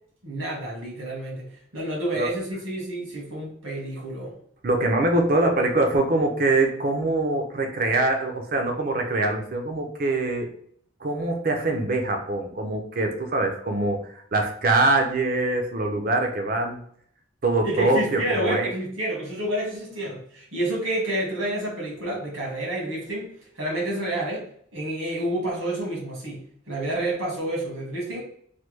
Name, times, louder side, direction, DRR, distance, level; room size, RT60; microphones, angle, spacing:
voice 1, 0.2-4.3 17.6-24.4 24.7-28.2, right 1 dB, 90° right, -3 dB, 1.4 m, -29 dB
voice 2, 4.6-10.5 11.0-16.8 17.4-18.7, right 2 dB, 45° right, 3 dB, 0.5 m, -23 dB
3.2 x 2.2 x 3.1 m, 0.63 s
head